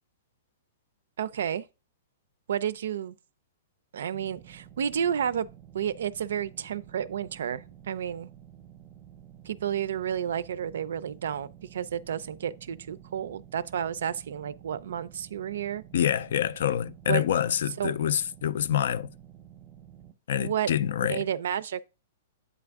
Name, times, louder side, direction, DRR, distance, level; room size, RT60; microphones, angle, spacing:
voice 1, 1.2-1.6 2.5-3.2 3.9-5.5 5.7-8.3 9.5-15.8 17.1-17.2 17.8-17.9 20.4-20.7 21.1-21.8, right 9 dB, 75° right, 0.4 m, -31 dB
sound 1, 4.1-20.1, right 10 dB, 20° right, 0.6 m, -51 dB
voice 2, 15.9-19.1 20.3-21.3, left 10 dB, 70° left, 0.3 m, -26 dB
8.4 x 3.5 x 3.5 m
hypercardioid pair, 155°, 0 cm